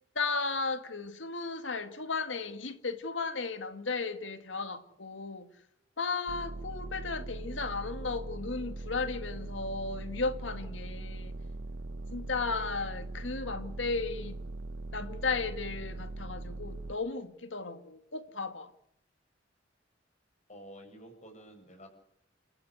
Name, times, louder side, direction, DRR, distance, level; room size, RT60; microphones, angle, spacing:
voice 1, 0.2-5.5 6.0-11.4 12.1-14.4 14.9-18.7, left 4 dB, 80° left, 2.0 m, -35 dB
sound 1, 6.3-16.9, right 2 dB, 55° right, 0.8 m, -40 dB
voice 2, 20.5-21.9, equal, 40° left, 7.6 m, -50 dB
29.0 x 14.5 x 8.0 m
head